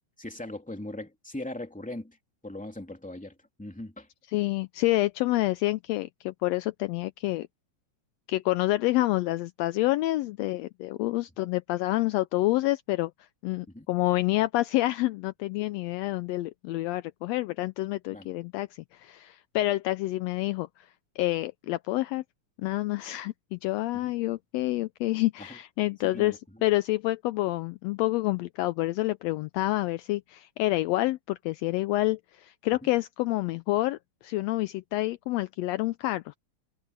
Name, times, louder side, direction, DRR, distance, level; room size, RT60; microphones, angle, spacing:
voice 1, 0.2-2.2 2.4-4.1 13.7-13.9 18.1-18.3 24.0-24.1 25.4-25.6 26.1-26.4, left 1 dB, 5° left, 2.5 m, -39 dB
voice 2, 4.3-7.5 8.3-13.1 13.4-20.9 21.2-22.2 22.6-36.4, left 18 dB, 85° left, 1.5 m, -28 dB
omnidirectional pair, 3.5 m